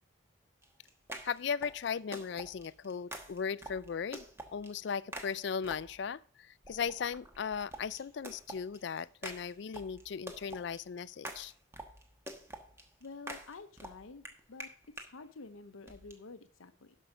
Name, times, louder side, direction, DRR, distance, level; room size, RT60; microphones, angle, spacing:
sound 1, 0.6-6.1 6.6-15.1 15.9-16.1, right 1 dB, 15° right, 1.1 m, -47 dB
voice 1, 1.2-4.3 4.5-11.5, left 6 dB, 55° left, 0.3 m, -37 dB
voice 2, 13.0-14.7 15.0-17.0, left 3 dB, 85° left, 0.7 m, -49 dB
12.5 x 5.5 x 5.0 m
head